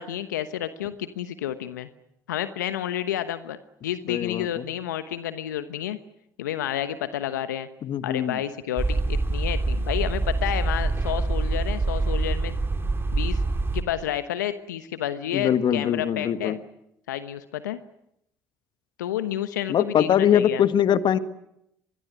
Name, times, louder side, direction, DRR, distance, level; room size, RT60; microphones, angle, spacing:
voice 1, 0.0-1.9 2.3-6.0 6.4-7.7 8.0-12.6 13.1-13.4 13.7-16.6 17.1-17.8 19.0-20.6, left 11 dB, 85° left, 12 dB, 1.1 m, -30 dB
voice 2, 4.1-4.6 7.8-8.4 15.3-16.6 19.7-21.2, left 9 dB, 55° left, 12 dB, 1.7 m, -22 dB
sound 1, 8.8-13.8, right 3 dB, 25° right, 4.8 m, -25 dB
25.0 x 21.5 x 9.4 m, 0.79 s
hypercardioid pair, 60°, 10 cm